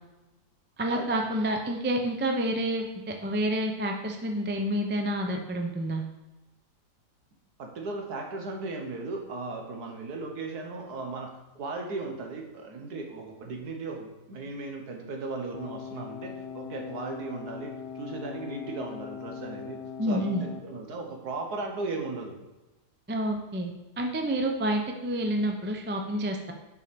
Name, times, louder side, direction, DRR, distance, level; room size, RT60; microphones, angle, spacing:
voice 1, 0.8-6.0 20.0-20.5 23.1-23.7 24.0-26.5, right 1 dB, 15° right, 3 dB, 0.3 m, -29 dB
voice 2, 7.6-22.4, right 3 dB, 65° right, 2 dB, 1.7 m, -37 dB
sound 1, 15.5-20.6, left 7 dB, 85° left, 1.2 m, -40 dB
7.0 x 5.4 x 5.3 m, 1.1 s
omnidirectional pair, 1.8 m